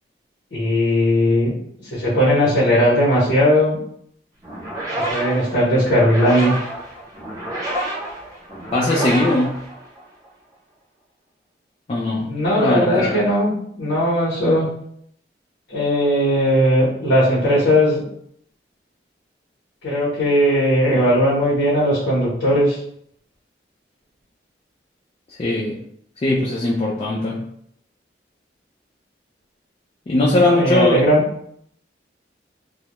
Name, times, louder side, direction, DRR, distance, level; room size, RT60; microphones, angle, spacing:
voice 1, 0.5-1.5 1.8-3.8 5.1-6.5 12.3-14.7 15.7-18.0 19.8-22.8 30.3-31.2, equal, 80° left, -9 dB, 0.8 m, -18 dB
sound 1, 4.4-10.3, right 1 dB, 20° right, 0.6 m, -29 dB
voice 2, 8.7-9.6 11.9-13.2 25.4-25.8 26.2-27.4 30.1-31.0, left 2 dB, 30° left, -4 dB, 0.3 m, -20 dB
2.1 x 2.0 x 2.8 m, 0.69 s
head